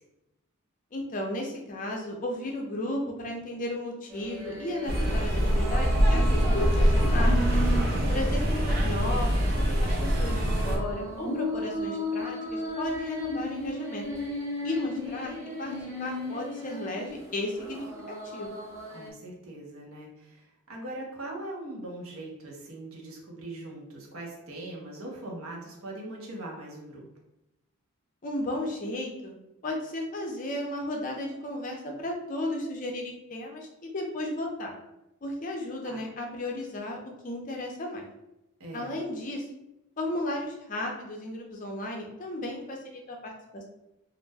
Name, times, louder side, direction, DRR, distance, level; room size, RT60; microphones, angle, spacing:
voice 1, 0.9-7.6 8.1-14.1 14.6-18.6 28.2-29.3 29.6-34.8 35.2-37.0 37.2-38.1 38.7-39.5 40.0-43.6, left 1 dB, 35° left, 1 dB, 0.5 m, -34 dB
sound 1, 4.1-19.1, equal, 10° right, 0.9 m, -36 dB
sound 2, 4.9-10.8, equal, 45° right, 0.5 m, -24 dB
voice 2, 7.7-8.2 18.9-27.0 35.8-36.0 38.6-38.9, right 1 dB, 75° right, -2 dB, 0.8 m, -41 dB
2.5 x 2.1 x 3.3 m, 0.92 s
head